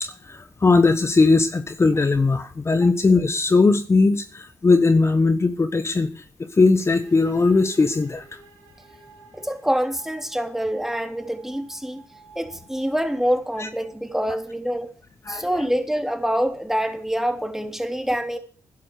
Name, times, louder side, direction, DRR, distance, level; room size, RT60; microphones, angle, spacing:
voice 1, 0.0-8.2 13.6-13.7 15.2-15.6, left 3 dB, 35° left, 1.3 m, -19 dB
sound 1, 6.8-14.5, right 3 dB, 90° right, 4.8 m, -51 dB
voice 2, 9.3-12.0 12.3-14.9 15.3-18.4, equal, 5° right, 3.2 m, -25 dB
12.0 x 11.0 x 6.6 m
hypercardioid pair, 40°, 7 cm